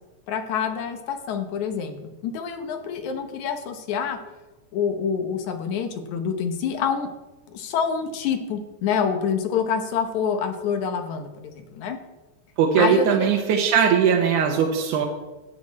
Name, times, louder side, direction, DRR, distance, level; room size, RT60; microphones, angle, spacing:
voice 1, 0.3-4.2 4.7-7.1 7.5-12.0 12.8-13.3, left 6 dB, 75° left, 6 dB, 2.4 m, -27 dB
voice 2, 12.6-15.1, right 7 dB, 85° right, 1 dB, 2.5 m, -20 dB
16.5 x 7.9 x 4.2 m, 1.1 s
omnidirectional pair, 3.4 m